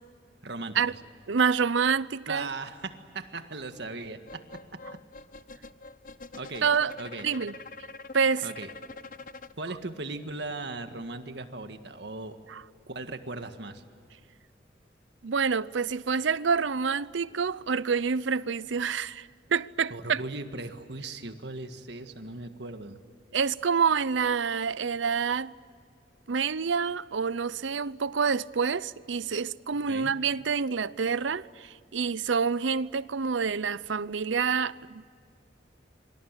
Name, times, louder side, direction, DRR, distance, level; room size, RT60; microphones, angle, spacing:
voice 1, 0.4-0.8 2.3-4.8 6.3-6.7 7.0-7.3 8.4-8.7 9.6-12.4 12.9-13.8 19.9-23.0 29.7-30.1, right 3 dB, 65° right, 1.8 m, -38 dB
voice 2, 1.3-2.5 6.6-6.9 7.2-7.5 8.1-8.5 12.5-12.6 15.2-20.2 23.3-25.5 26.3-35.1, right 6 dB, 85° right, 0.6 m, -27 dB
sound 1, 4.3-9.5, left 3 dB, 45° left, 0.7 m, -45 dB
27.0 x 25.0 x 8.2 m
head